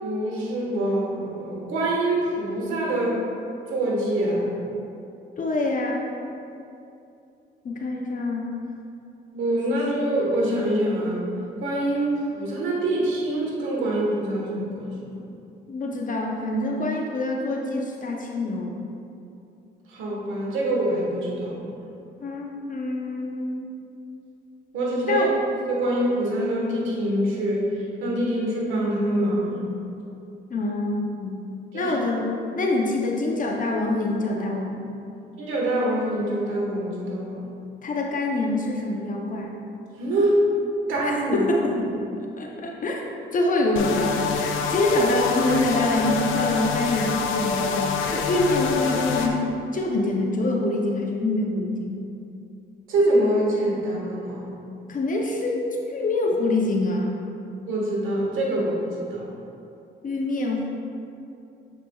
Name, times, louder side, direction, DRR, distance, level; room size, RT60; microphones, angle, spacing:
voice 1, 0.0-3.2 3.7-4.5 9.3-11.2 11.6-15.2 19.9-21.7 24.7-25.3 25.7-27.7 28.0-29.7 31.7-31.9 35.4-37.4 40.0-40.4 40.9-41.5 52.9-54.4 57.7-59.3, right 1 dB, 85° right, -3 dB, 1.4 m, -25 dB
voice 2, 5.4-6.0 7.6-8.5 9.8-9.9 15.7-18.8 22.2-23.7 25.1-25.3 30.5-31.4 31.7-34.9 37.8-39.5 41.0-41.9 42.4-43.0 43.3-44.1 44.7-52.0 54.9-57.2 60.0-60.7, left 2 dB, 40° left, 0 dB, 0.7 m, -25 dB
sound 1, 43.8-49.3, left 5 dB, 85° left, 0.5 m, -26 dB
7.1 x 5.8 x 2.3 m, 2.6 s
cardioid pair, 90°, 20 cm